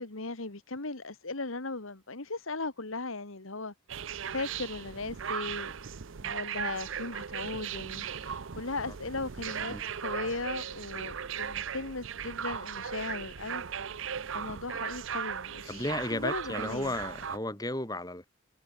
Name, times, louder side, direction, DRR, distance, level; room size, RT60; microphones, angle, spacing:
voice 1, 0.0-3.7 4.3-5.7 6.2-13.6 14.3-15.8 16.1-16.9, left 3 dB, 75° left, 1.9 m, -37 dB
sound 1, 3.9-17.4, right 7 dB, 65° right, 0.6 m, -37 dB
voice 2, 15.7-18.3, left 1 dB, 15° left, 4.0 m, -34 dB
head